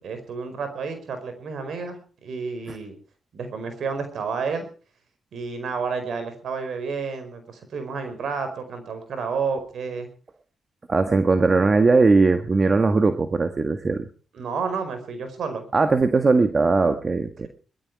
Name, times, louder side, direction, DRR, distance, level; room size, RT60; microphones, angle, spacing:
voice 1, 0.0-2.9 3.3-4.7 5.3-10.1 14.3-15.7, right 5 dB, 70° right, 8 dB, 4.8 m, -30 dB
voice 2, 10.9-14.1 15.7-17.5, right 3 dB, 45° right, 8 dB, 1.5 m, -19 dB
21.0 x 13.0 x 4.8 m, 0.39 s
supercardioid pair, 45°, 0 cm